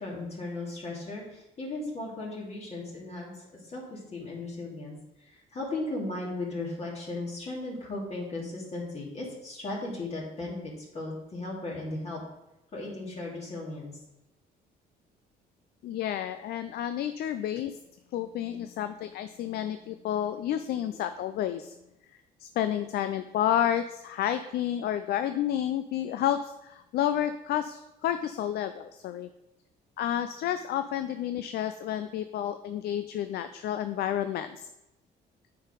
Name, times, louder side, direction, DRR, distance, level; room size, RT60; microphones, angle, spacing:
voice 1, 0.0-3.3 3.6-12.2 12.7-13.9, left 2 dB, 40° left, -3 dB, 2.7 m, -36 dB
voice 2, 15.8-17.8 18.1-21.7 22.4-29.3 30.0-34.7, left 11 dB, 70° left, 10 dB, 0.4 m, -30 dB
8.7 x 4.6 x 5.1 m, 0.90 s
cardioid pair, 105°, 17 cm